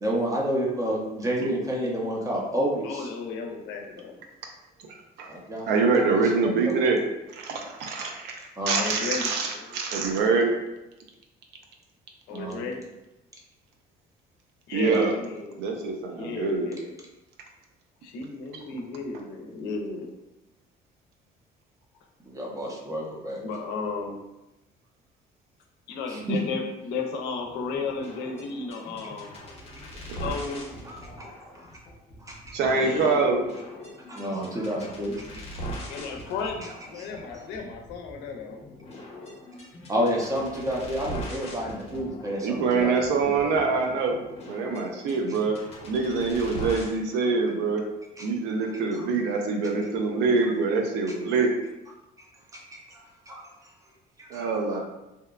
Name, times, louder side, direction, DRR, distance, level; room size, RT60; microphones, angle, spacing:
voice 1, 0.0-3.1 5.3-6.3 6.7-6.9 8.6-8.8 12.3-12.6 14.8-15.0 22.2-23.4 26.1-26.4 30.8-31.8 32.2-32.7 34.1-35.2 36.6-37.1 37.3-37.4 39.9-43.5 48.2-48.3 48.6-49.1 52.5-53.7 54.2-54.8, equal, 20° right, -2 dB, 0.6 m, -30 dB
voice 2, 2.8-4.2 8.8-9.8 12.3-12.9 14.7-15.6 16.1-17.0 18.0-20.1 23.4-24.2 25.9-29.4 30.1-30.6 32.7-33.3 34.2-34.3 35.9-38.6, left 4 dB, 90° left, 2 dB, 0.5 m, -34 dB
voice 3, 5.7-7.0 7.4-8.4 8.7-10.5 14.7-15.1 15.6-16.7 32.5-33.4 42.4-44.2 44.5-45.6 45.8-47.8 48.2-51.5 54.3-54.8, right 4 dB, 85° right, 2 dB, 0.5 m, -25 dB
sound 1, 27.4-46.9, equal, 40° left, 0.7 m, -41 dB
2.7 x 2.1 x 2.3 m, 0.96 s
cardioid pair, 110°, 17 cm